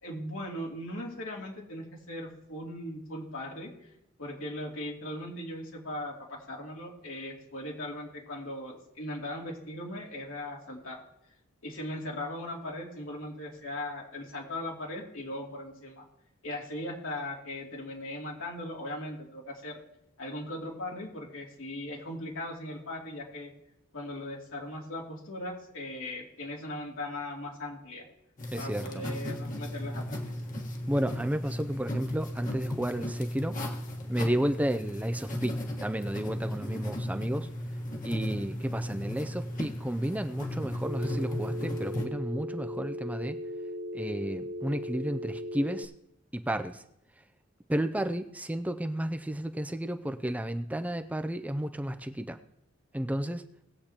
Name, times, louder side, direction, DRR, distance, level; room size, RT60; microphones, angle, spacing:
voice 1, 0.0-3.7 4.2-11.0 11.6-16.0 16.4-19.8 20.2-23.5 23.9-28.1 28.5-30.2, left 1 dB, 80° left, -2 dB, 2.9 m, -38 dB
sound 1, 28.4-42.1, left 1 dB, 40° left, 1.5 m, -36 dB
voice 2, 28.5-29.0 30.9-33.6 34.1-37.5 38.0-43.4 43.9-45.9 46.3-46.8 47.7-52.4 52.9-53.4, right 1 dB, 5° right, 8 dB, 0.4 m, -32 dB
Telephone, 40.9-45.9, equal, 40° right, 0.7 m, -37 dB
19.5 x 8.2 x 2.9 m, 0.78 s
head